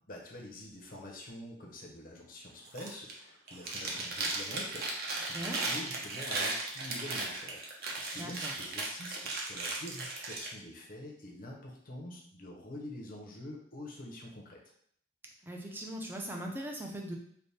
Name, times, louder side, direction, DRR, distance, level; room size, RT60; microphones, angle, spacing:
voice 1, 0.1-14.6, left 1 dB, 45° left, -1 dB, 0.7 m, -46 dB
Chewing mastication, 2.7-3.2 3.5-10.5, right 2 dB, 50° right, 0.7 m, -36 dB
voice 2, 8.2-8.5 15.4-17.1, right 1 dB, 10° right, 0 dB, 0.5 m, -39 dB
3.3 x 2.1 x 4.1 m, 0.64 s
head